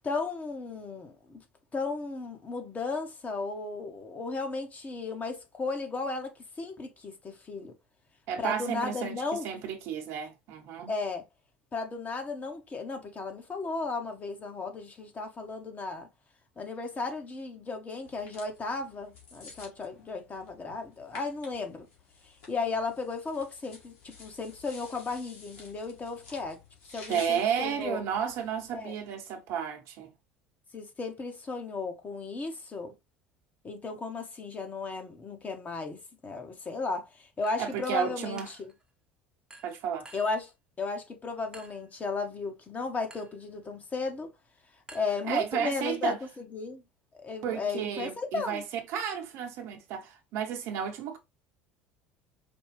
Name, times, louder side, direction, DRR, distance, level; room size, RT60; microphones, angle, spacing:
voice 1, 0.0-1.4 1.7-7.7 8.4-9.5 10.9-11.2 11.7-16.1 16.6-21.9 22.2-26.6 26.9-28.0 28.7-29.0 30.7-32.9 33.6-38.7 40.1-40.5 40.8-44.3 44.9-46.8 47.1-48.6, left 4 dB, 30° left, 1.0 m, -35 dB
voice 2, 8.3-10.9 27.1-30.1 37.6-38.5 39.6-40.1 45.3-46.2 47.4-48.6 48.9-51.2, right 8 dB, 55° right, 1.0 m, -32 dB
sound 1, 18.0-28.8, left 3 dB, 60° left, 2.0 m, -52 dB
Chink clink, 37.4-38.0 38.4-38.8 39.5-40.5 41.5-41.9 43.1-43.4 44.9-45.7, right 2 dB, 10° right, 1.0 m, -51 dB
5.1 x 2.3 x 3.3 m
figure-of-eight pair, 65°, 6 cm